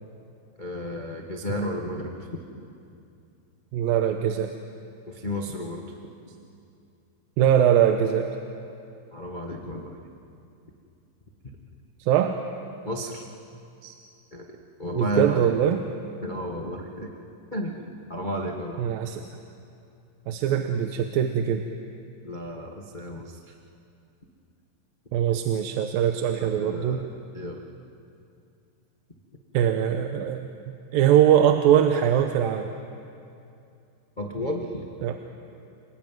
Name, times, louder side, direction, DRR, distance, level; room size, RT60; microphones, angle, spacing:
voice 1, 0.6-2.4 5.1-6.0 9.1-10.0 12.8-13.2 14.3-15.5 16.2-17.1 17.5-18.8 22.2-23.5 26.4-27.7 34.2-34.8, equal, 55° left, 1 dB, 0.5 m, -33 dB
voice 2, 3.7-4.5 7.4-8.3 12.0-12.4 13.8-13.9 15.0-15.8 18.8-19.3 20.3-21.6 25.1-27.1 29.5-32.7 35.0-35.2, right 10 dB, 85° right, 6 dB, 2.6 m, -22 dB
28.0 x 19.0 x 9.3 m, 2.5 s
omnidirectional pair, 4.1 m